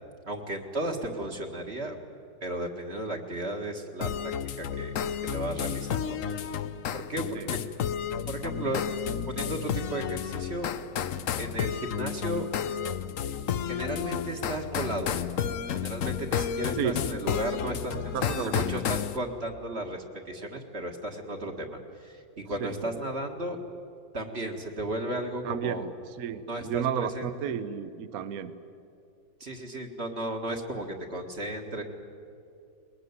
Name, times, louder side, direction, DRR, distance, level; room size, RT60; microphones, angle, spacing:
voice 1, 0.3-2.0 2.4-4.9 5.2-6.5 6.9-7.6 8.3-8.8 9.3-10.7 11.3-12.5 13.7-15.1 15.7-23.6 24.1-25.9 26.5-27.5 29.4-31.8, right 1 dB, 35° right, 3 dB, 2.0 m, -34 dB
sound 1, 4.0-19.2, left 8 dB, 60° left, 1.0 m, -32 dB
voice 2, 18.1-18.8 22.6-22.7 25.4-25.9 26.2-28.5, right 8 dB, 60° right, 13 dB, 1.3 m, -32 dB
21.0 x 21.0 x 9.6 m, 2.6 s
omnidirectional pair, 1.9 m